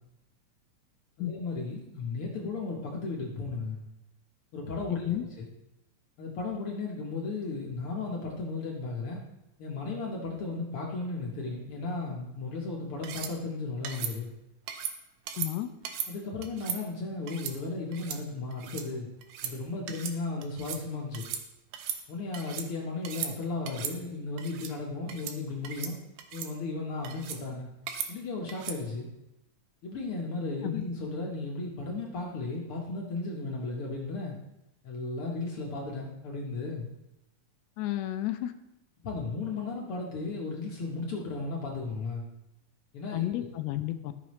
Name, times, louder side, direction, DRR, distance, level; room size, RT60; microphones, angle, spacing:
voice 1, 1.2-3.8 4.5-5.5 6.2-9.2 9.6-14.3 16.1-19.1 19.4-21.3 22.1-25.9 26.3-27.7 28.1-29.1 29.8-34.3 34.8-36.9 39.0-42.2 42.9-43.5, left 3 dB, 60° left, -2 dB, 1.6 m, -35 dB
sound 1, 13.0-13.3 13.8-14.1 14.7-14.9 15.3-15.5 15.8-16.1 16.4-16.8 17.3-17.5 17.9-18.2 18.5-18.8 19.2-19.5 19.9-20.2 20.4-20.8 21.1-21.4 21.7-22.7 23.0-23.3 23.7-23.9 24.4-24.7 25.1-25.4 25.6-25.9 26.2-26.5 27.0-27.4 27.9-28.1 28.5-28.8, right 9 dB, 85° right, 2.3 m, -37 dB
voice 2, 15.3-15.7 30.6-30.8 37.8-38.5 43.1-44.1, left 14 dB, 75° left, 8 dB, 1.7 m, -32 dB
13.5 x 5.9 x 3.1 m, 0.92 s
omnidirectional pair, 3.6 m